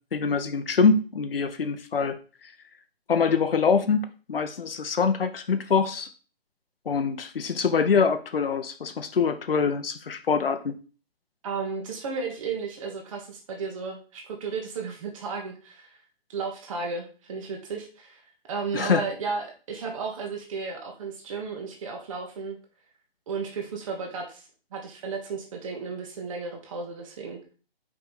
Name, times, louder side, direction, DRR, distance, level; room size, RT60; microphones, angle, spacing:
voice 1, 0.1-2.5 3.1-6.1 6.9-10.7 18.7-19.1, left 5 dB, 65° left, 9 dB, 0.7 m, -24 dB
voice 2, 11.4-16.0 16.3-18.2 18.5-22.6 23.3-27.5, right 4 dB, 35° right, 1 dB, 1.1 m, -34 dB
4.9 x 4.8 x 4.2 m, 0.37 s
figure-of-eight pair, 140°, 31 cm